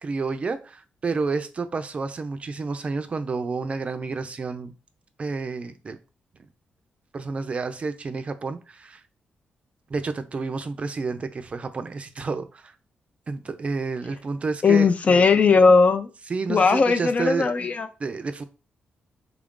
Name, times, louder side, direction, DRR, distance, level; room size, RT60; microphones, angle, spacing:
voice 1, 0.0-4.7 5.2-6.0 7.1-9.0 9.9-12.7 13.3-14.9 16.3-17.5 18.0-18.4, right 4 dB, 40° right, 0.4 m, -30 dB
voice 2, 14.6-16.1 16.5-17.9, left 4 dB, 40° left, 0.4 m, -18 dB
3.4 x 2.4 x 3.6 m
cardioid pair, 95°, 3 cm